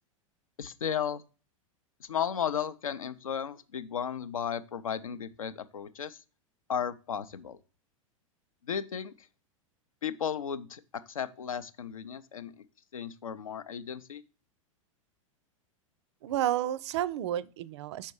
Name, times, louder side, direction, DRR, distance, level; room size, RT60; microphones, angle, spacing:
voice 1, 0.6-1.2 2.0-6.2 6.7-7.6 8.6-9.3 10.0-10.8 11.1-12.5 12.9-14.2, left 8 dB, 75° left, 0.5 m, -34 dB
voice 2, 16.2-18.1, right 12 dB, 55° right, 0.4 m, -31 dB
5.5 x 4.4 x 4.6 m
figure-of-eight pair, 95°, 18 cm